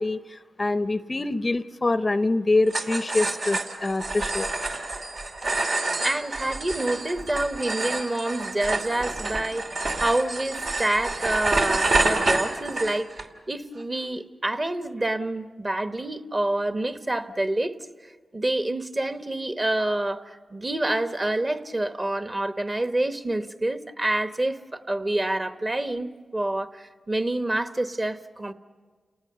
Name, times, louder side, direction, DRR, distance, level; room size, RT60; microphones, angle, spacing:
voice 1, 0.0-4.5, left 2 dB, 35° left, 13 dB, 0.6 m, -25 dB
sound 1, 2.7-13.2, right 2 dB, 75° right, 2.6 m, -28 dB
voice 2, 6.0-13.1 13.5-17.7 18.3-28.5, right 1 dB, 30° right, 9 dB, 1.2 m, -27 dB
29.5 x 19.0 x 6.7 m, 1.5 s
cardioid pair, 60°, 0 cm